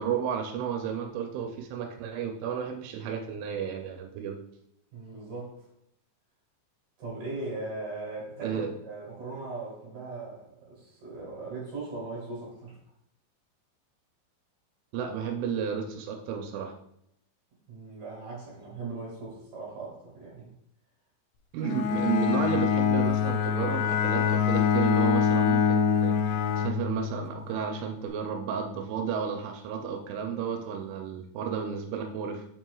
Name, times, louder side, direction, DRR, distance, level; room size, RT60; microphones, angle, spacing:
voice 1, 0.0-4.4 8.4-8.7 14.9-16.7 21.5-32.5, right 7 dB, 85° right, 4 dB, 3.0 m, -32 dB
voice 2, 4.9-5.6 7.0-12.8 17.7-20.5, right 3 dB, 50° right, -5 dB, 3.0 m, -39 dB
Bowed string instrument, 21.6-27.4, left 7 dB, 85° left, 2.6 m, -25 dB
7.5 x 5.9 x 2.3 m, 0.75 s
omnidirectional pair, 5.5 m